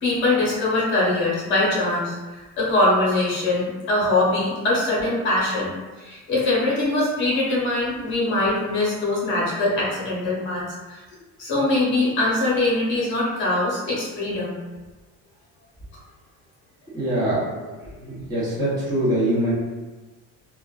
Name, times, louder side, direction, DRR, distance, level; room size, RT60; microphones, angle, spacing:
voice 1, 0.0-5.7 6.0-10.6 10.9-11.0 11.4-14.6, left 2 dB, 40° left, -5 dB, 0.8 m, -22 dB
voice 2, 16.9-17.7 18.0-19.5, right 1 dB, 10° right, -10 dB, 0.7 m, -23 dB
2.4 x 2.2 x 2.3 m, 1.2 s
cardioid pair, 170°, 31 cm